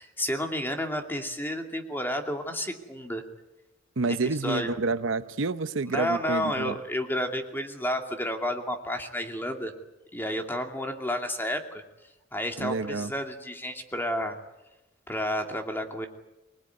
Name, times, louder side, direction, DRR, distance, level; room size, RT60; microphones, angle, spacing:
voice 1, 0.0-3.2 4.1-4.2 4.4-4.7 5.9-9.7 10.1-11.8 12.3-14.4 15.1-16.1, equal, 10° left, 2.6 m, -31 dB
voice 2, 4.0-6.8 12.6-13.1, right 3 dB, 70° right, 0.8 m, -29 dB
25.0 x 19.5 x 9.5 m
head